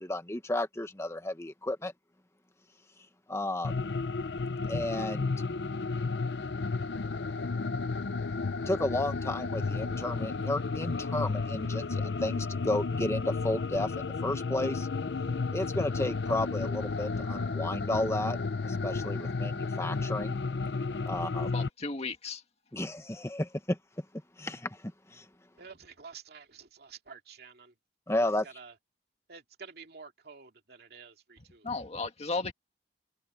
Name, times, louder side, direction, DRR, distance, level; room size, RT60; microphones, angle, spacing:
voice 1, 0.0-1.9 3.3-3.7 4.7-5.3 8.7-14.9 15.5-18.4 18.6-20.4 21.1-21.5 22.7-23.8 24.4-24.8 25.1-25.2 28.1-28.5, left 1 dB, 15° left, 1.4 m, -32 dB
sound 1, 3.6-21.7, left 4 dB, 75° left, 0.6 m, -32 dB
voice 2, 21.2-22.4 31.6-32.5, left 3 dB, 40° left, 1.8 m, -35 dB
voice 3, 25.6-27.7 28.1-28.7 29.3-31.7, right 5 dB, 65° right, 2.5 m, -50 dB
open air
head